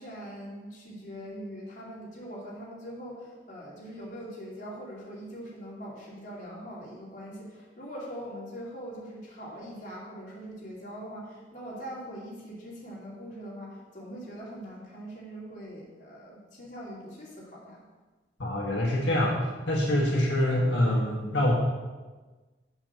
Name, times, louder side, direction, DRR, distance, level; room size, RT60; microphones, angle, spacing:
voice 1, 0.0-17.8, equal, 45° left, -6 dB, 2.6 m, -42 dB
voice 2, 18.4-19.4 19.7-21.5, left 1 dB, 85° left, -3 dB, 1.5 m, -25 dB
6.5 x 6.0 x 6.8 m, 1.3 s
head